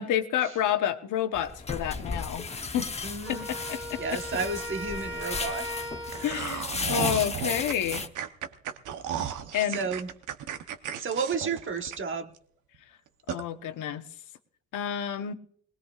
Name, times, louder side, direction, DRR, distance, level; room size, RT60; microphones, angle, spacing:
voice 1, 0.0-2.9 3.3-4.0 6.2-8.1 9.5-9.8 13.3-14.1 14.7-15.3, left 10 dB, 85° left, 7 dB, 1.0 m, -29 dB
sound 1, 1.3-8.1, left 4 dB, 20° left, 0.9 m, -35 dB
voice 2, 3.0-3.5 4.0-5.7 6.7-7.0 9.1-9.4 9.7-10.1 11.0-12.3, right 4 dB, 40° right, 7 dB, 1.2 m, -32 dB
Wind instrument woodwind instrument, 3.3-6.6, left 1 dB, 5° right, 1.7 m, -38 dB
sound 2, 6.1-12.4 12.7-12.8 13.3-13.4, right 9 dB, 80° right, 0.9 m, -34 dB
19.5 x 19.5 x 2.4 m, 0.62 s
cardioid pair, 90°, 30 cm